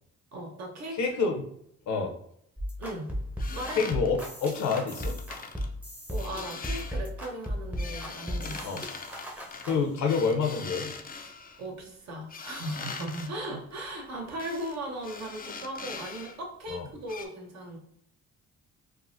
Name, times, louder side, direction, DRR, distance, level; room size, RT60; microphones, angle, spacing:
voice 1, 0.3-1.1 2.8-3.1 3.5-3.9 6.1-8.9 9.7-9.8 10.1-10.2 11.6-17.8, right 1 dB, 60° right, 1 dB, 1.0 m, -38 dB
voice 2, 1.0-1.5 1.9-2.1 3.8-5.2 8.6-8.8 9.7-10.9 16.7-16.8, left 5 dB, 70° left, 3 dB, 0.7 m, -27 dB
sound 1, 2.6-9.8, equal, 5° right, 0.7 m, -35 dB
sound 2, 3.4-5.7 6.1-7.1 7.4-11.7 12.3-13.3 14.4-14.8 15.0-16.4 16.7-16.8 17.1-17.3, left 5 dB, 30° left, 0.4 m, -42 dB
3.5 x 2.1 x 2.6 m, 0.69 s
cardioid pair, 90°, 30 cm